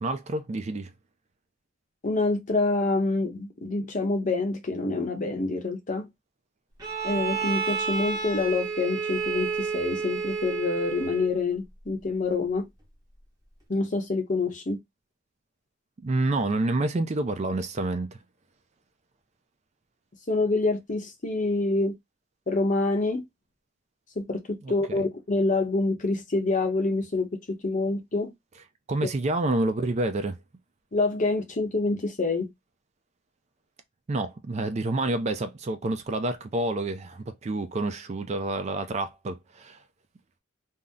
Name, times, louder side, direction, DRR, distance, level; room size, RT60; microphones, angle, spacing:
voice 1, 0.0-0.9 16.0-18.2 24.6-25.0 28.9-30.4 34.1-39.8, right 2 dB, 35° right, 0.4 m, -28 dB
voice 2, 2.0-6.1 7.0-12.6 13.7-14.8 20.3-21.9 22.5-23.2 24.2-24.4 24.7-27.3 27.6-28.3 30.9-32.5, left 3 dB, 40° left, 0.7 m, -26 dB
Bowed string instrument, 6.8-11.4, right 5 dB, 20° right, 0.9 m, -30 dB
2.7 x 2.0 x 3.5 m
head